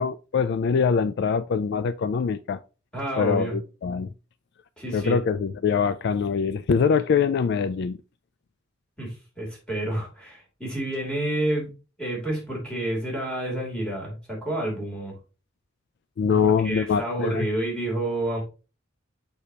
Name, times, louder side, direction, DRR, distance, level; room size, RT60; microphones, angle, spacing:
voice 1, 0.0-2.6 3.2-4.1 4.9-8.0 16.2-17.5, left 6 dB, 55° left, 0.3 m, -23 dB
voice 2, 2.9-3.5 4.8-5.2 9.0-11.7 12.0-15.1 16.3-18.4, right 1 dB, 5° left, 3.1 m, -29 dB
6.6 x 5.5 x 2.8 m
head